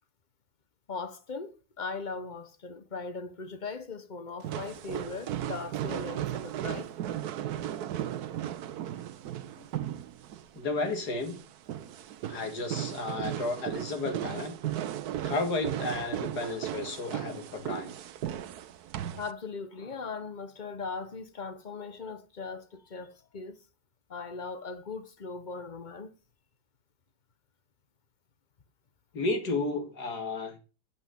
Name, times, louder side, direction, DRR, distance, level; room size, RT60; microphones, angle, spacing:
voice 1, 0.9-6.9 19.2-23.6 24.1-26.1, left 4 dB, 35° left, 0.9 m, -39 dB
sound 1, 4.4-19.3, right 11 dB, 70° right, 1.2 m, -36 dB
voice 2, 10.5-11.4 12.3-14.6 15.2-17.9 29.1-30.6, left 2 dB, 65° left, 2.5 m, -32 dB
8.4 x 8.1 x 6.7 m
omnidirectional pair, 1.8 m